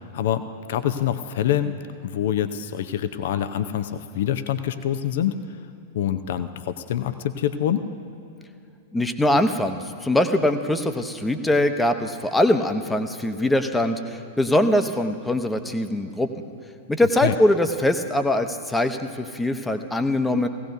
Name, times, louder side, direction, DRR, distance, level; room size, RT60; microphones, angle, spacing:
voice 1, 0.1-1.8 2.0-5.4 5.9-7.9 17.2-17.3, left 10 dB, 55° left, 11 dB, 0.6 m, -25 dB
voice 2, 8.9-16.3 16.9-20.5, left 1 dB, 5° left, 7 dB, 0.8 m, -22 dB
Guitar, 13.2-16.7, left 5 dB, 75° left, 1.8 m, -47 dB
18.0 x 16.5 x 2.7 m, 2.7 s
figure-of-eight pair, 100°, 0 cm